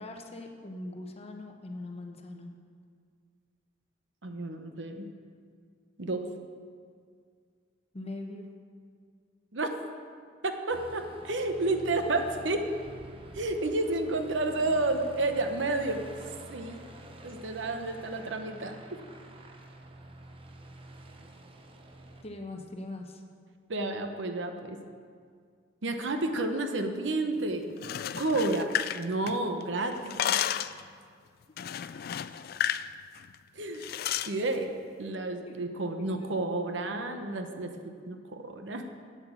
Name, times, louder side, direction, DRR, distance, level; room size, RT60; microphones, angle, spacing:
voice 1, 0.0-2.5 7.9-8.5 22.2-23.2 35.5-35.6 36.0-36.4, left 2 dB, 30° left, 3 dB, 0.9 m, -41 dB
voice 2, 4.2-5.1 6.0-6.3 9.5-9.7 10.4-12.6 13.3-16.0 16.5-16.8 17.2-18.8 23.7-24.8 25.8-27.7 28.2-30.3 33.6-33.9 34.3-34.7 35.0-37.7 38.1-38.9, right 2 dB, 70° right, 6 dB, 0.9 m, -31 dB
Aircraft, 10.7-22.2, right 1 dB, 30° right, 0.8 m, -48 dB
sound 1, 27.7-29.6 29.9-30.8 31.6-32.9 33.2-33.3 33.8-34.3, left 10 dB, 50° left, 0.3 m, -32 dB
8.5 x 7.8 x 7.2 m, 2.1 s
head